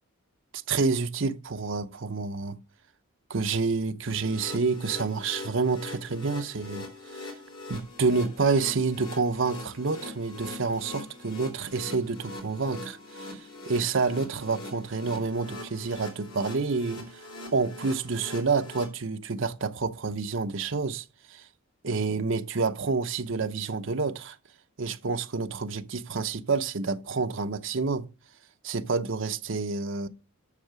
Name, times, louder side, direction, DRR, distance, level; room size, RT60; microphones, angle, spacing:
voice 1, 0.5-2.6 3.3-6.9 7.1-7.3 7.7-13.4 13.7-17.2 17.5-21.5 21.8-24.4 24.8-28.1 28.6-30.1, right 4 dB, 60° right, 0.7 m, -28 dB
sound 1, 4.1-18.8, left 2 dB, 85° left, 3.9 m, -42 dB
8.3 x 6.5 x 6.8 m
head